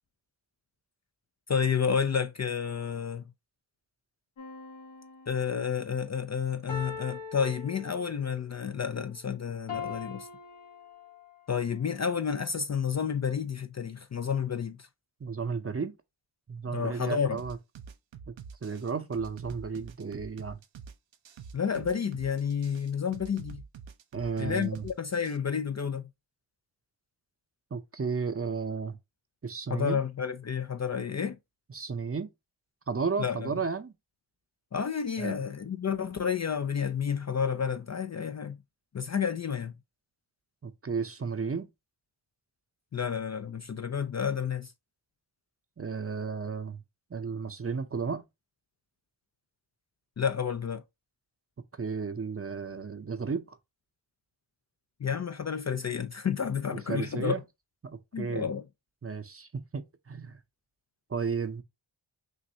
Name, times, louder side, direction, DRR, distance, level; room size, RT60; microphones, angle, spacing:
voice 1, 1.5-3.2 5.3-10.3 11.5-14.9 16.7-17.4 21.5-23.6 24.4-26.0 29.7-31.4 33.2-33.5 34.7-38.6 38.9-39.7 42.9-44.7 50.2-50.8 55.0-57.4 58.1-58.6, left 7 dB, 40° left, 0.4 m, -30 dB
sound 1, 4.4-5.7 6.7-8.4 9.7-11.4 12.0-12.2, left 5 dB, 85° left, 1.7 m, -42 dB
voice 2, 15.2-15.9 16.5-17.6 18.3-18.4 18.6-20.6 24.1-24.9 27.7-28.9 29.4-30.0 31.7-32.3 32.9-33.9 35.2-35.4 40.6-41.7 45.8-46.8 47.1-48.2 51.7-53.6 56.7-57.4 57.8-58.5 59.0-60.4 61.1-61.6, right 5 dB, 30° right, 0.6 m, -33 dB
sound 2, 17.4-25.4, right 6 dB, 70° right, 0.6 m, -46 dB
6.2 x 2.6 x 2.7 m
wide cardioid pair, 85°, 47 cm